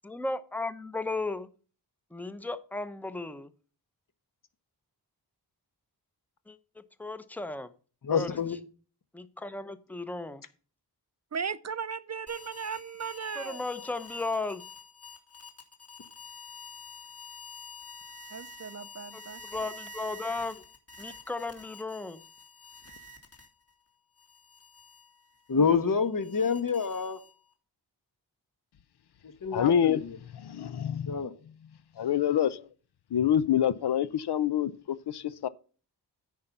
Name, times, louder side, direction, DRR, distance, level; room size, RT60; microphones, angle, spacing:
voice 1, 0.0-1.5 2.1-3.5 6.5-7.7 8.1-8.6 9.1-10.4 13.3-14.7 19.1-20.6 21.0-22.2, left 3 dB, 5° left, 0.8 m, -35 dB
voice 2, 8.0-8.6 25.5-27.2 29.4-30.2 31.1-31.3, left 5 dB, 50° left, 1.2 m, -27 dB
voice 3, 11.3-13.6 18.3-19.4, right 6 dB, 40° right, 0.5 m, -36 dB
sound 1, 12.3-23.7 24.2-27.5, left 3 dB, 35° left, 2.5 m, -48 dB
voice 4, 29.5-30.0 30.3-31.2 32.0-32.7 33.1-35.5, left 9 dB, 70° left, 0.6 m, -26 dB
9.5 x 5.5 x 5.9 m
wide cardioid pair, 70°, 41 cm